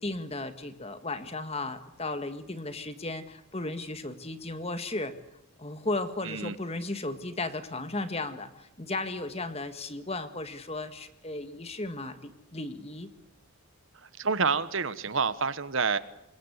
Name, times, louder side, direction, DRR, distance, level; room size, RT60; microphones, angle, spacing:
voice 1, 0.0-5.1 5.6-13.1, left 2 dB, 25° left, 10 dB, 1.7 m, -35 dB
voice 2, 6.2-6.6 14.2-16.0, right 5 dB, 60° right, 15 dB, 1.2 m, -28 dB
26.0 x 22.5 x 8.1 m, 0.81 s
head